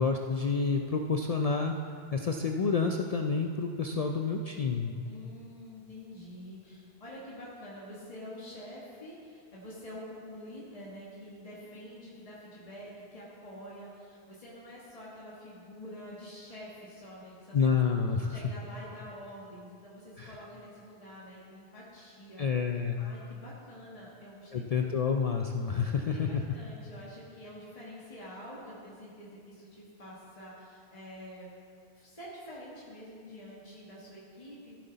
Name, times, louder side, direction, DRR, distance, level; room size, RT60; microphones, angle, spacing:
voice 1, 0.0-1.7 2.1-5.0 17.5-18.4 20.2-20.4 22.4-23.0 24.5-26.4, left 5 dB, 55° left, 3 dB, 0.4 m, -29 dB
voice 2, 5.0-17.8 18.3-22.5 23.0-24.9 25.8-25.9 26.1-31.5 31.9-34.8, equal, 35° left, -7 dB, 1.7 m, -47 dB
14.0 x 7.8 x 4.0 m, 2.3 s
omnidirectional pair, 1.1 m